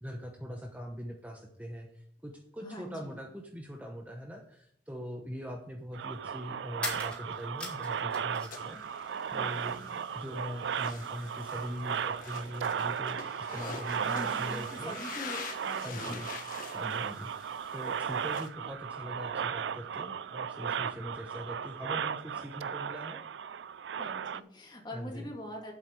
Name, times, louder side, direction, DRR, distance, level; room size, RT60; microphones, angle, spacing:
voice 1, 0.0-8.8 9.3-9.8 10.1-15.0 15.8-16.3 16.7-17.3 17.7-23.2 24.9-25.3, equal, 10° right, 2 dB, 0.9 m, -42 dB
voice 2, 2.6-3.2 9.3-10.0 14.0-15.4 15.6-16.2 24.0-25.7, left 1 dB, 25° left, 1 dB, 2.2 m, -43 dB
sound 1, 4.5-4.6 6.7-8.7 9.0-9.9, left 1 dB, 5° left, 2.6 m, -41 dB
sound 2, 5.9-24.4, right 7 dB, 80° right, 0.4 m, -36 dB
sound 3, 8.5-18.5, left 4 dB, 50° left, 1.5 m, -46 dB
8.0 x 7.9 x 4.6 m, 0.71 s
head